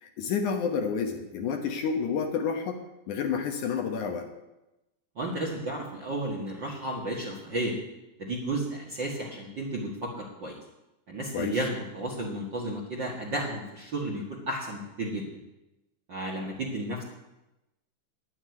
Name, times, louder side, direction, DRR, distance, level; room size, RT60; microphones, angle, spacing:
voice 1, 0.0-2.8 3.1-4.3 11.3-11.6, left 6 dB, 70° left, 4 dB, 1.9 m, -29 dB
voice 2, 5.1-7.7 8.2-10.6 11.1-15.3 16.1-17.0, right 1 dB, 65° right, -2 dB, 1.1 m, -33 dB
9.7 x 9.6 x 9.5 m, 0.97 s
omnidirectional pair, 5.0 m